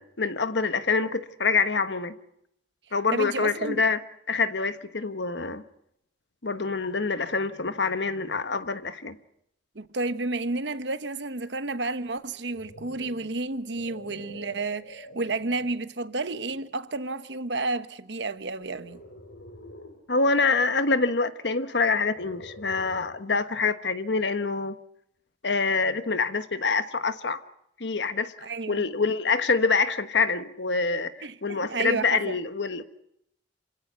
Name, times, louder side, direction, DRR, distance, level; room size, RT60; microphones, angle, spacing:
voice 1, 0.0-2.1 2.9-4.0 4.3-5.6 6.4-9.2 20.1-24.8 25.4-27.4 27.8-32.8, left 4 dB, 65° left, 1.3 m, -26 dB
voice 2, 3.1-3.8 9.7-19.0 28.4-28.8 31.2-32.4, right 3 dB, 65° right, 1.1 m, -31 dB
sound 1, 12.2-15.9 16.5-16.8 18.6-20.1 21.8-23.2, left 1 dB, 85° left, 4.0 m, -47 dB
27.5 x 16.5 x 8.2 m
head